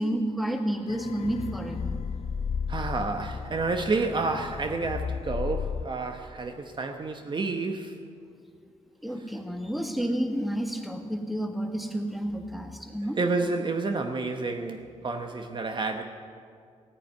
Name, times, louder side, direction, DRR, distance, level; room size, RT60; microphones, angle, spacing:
voice 1, 0.0-2.0 9.0-13.2, right 1 dB, ahead, 4 dB, 1.7 m, -30 dB
sound 1, 0.9-5.9, left 6 dB, 55° left, 0.7 m, -34 dB
voice 2, 2.7-8.0 13.1-16.0, right 3 dB, 40° right, 5 dB, 1.0 m, -30 dB
15.5 x 9.9 x 9.3 m, 2.3 s
cardioid pair, 85°, 12 cm